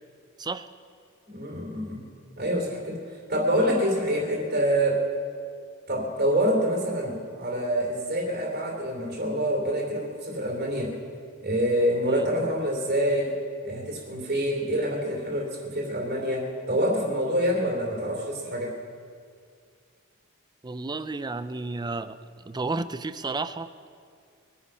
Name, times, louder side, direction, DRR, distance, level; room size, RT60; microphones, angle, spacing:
voice 1, 1.3-2.0 2.4-5.0 5.9-11.0 11.4-13.3 13.6-18.7, equal, 50° right, 0 dB, 3.1 m, -26 dB
voice 2, 20.6-23.7, right 3 dB, 20° right, 12 dB, 0.5 m, -32 dB
22.5 x 9.6 x 5.6 m, 2.2 s
head